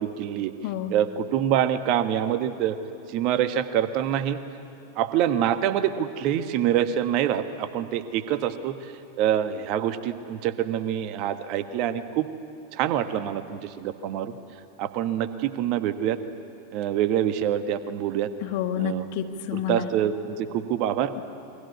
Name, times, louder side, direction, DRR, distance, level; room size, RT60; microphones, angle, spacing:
voice 1, 0.0-0.5 0.9-2.8 3.1-4.4 5.0-8.8 9.2-12.3 12.7-14.4 14.8-16.2 16.7-18.3 18.8-19.1 19.5-21.1, right 10 dB, 40° right, 11 dB, 1.4 m, -25 dB
voice 2, 0.6-0.9 18.4-19.9, left 9 dB, 50° left, 6 dB, 1.8 m, -29 dB
28.5 x 23.5 x 8.5 m, 2.7 s
figure-of-eight pair, 90°, 0 cm